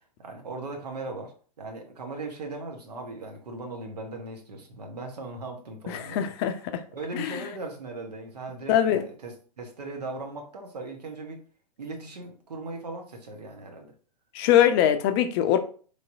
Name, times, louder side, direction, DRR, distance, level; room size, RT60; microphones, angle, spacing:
voice 1, 0.2-1.3 1.6-6.3 6.9-11.4 11.8-13.9, right 2 dB, 75° right, 0.9 m, -38 dB
voice 2, 5.9-6.8 7.1-7.4 8.7-9.0 14.3-15.6, left 10 dB, 35° left, 0.4 m, -22 dB
3.3 x 2.6 x 2.6 m
figure-of-eight pair, 100°, 21 cm